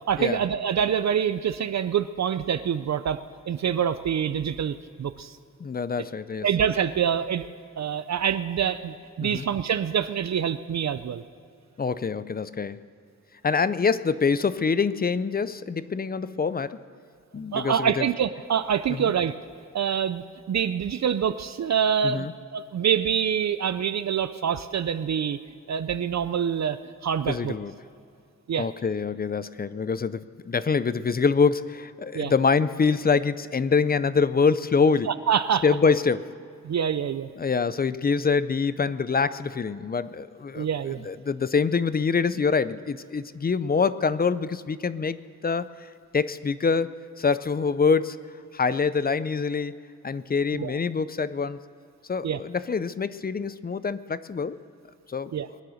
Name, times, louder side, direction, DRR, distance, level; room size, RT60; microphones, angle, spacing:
voice 1, 0.1-3.2 3.5-5.4 6.4-7.5 7.8-11.2 17.5-19.3 19.7-25.4 25.7-27.6 28.5-28.7 32.1-32.3 35.1-35.6 36.6-37.3 40.6-41.1 50.5-50.8 52.2-52.4 55.3-55.5, right 8 dB, 55° right, 12 dB, 0.5 m, -26 dB
voice 2, 5.6-6.5 9.2-9.5 11.8-12.8 13.4-16.8 17.3-18.1 18.9-19.1 22.0-22.3 27.3-27.7 28.6-35.1 35.6-36.3 37.4-45.2 45.4-45.7 46.1-48.2 48.5-49.8 50.0-51.6 52.1-54.6 55.1-55.3, left 5 dB, 30° left, 16 dB, 0.4 m, -25 dB
21.5 x 9.6 x 6.4 m, 2.4 s
wide cardioid pair, 105°, 33 cm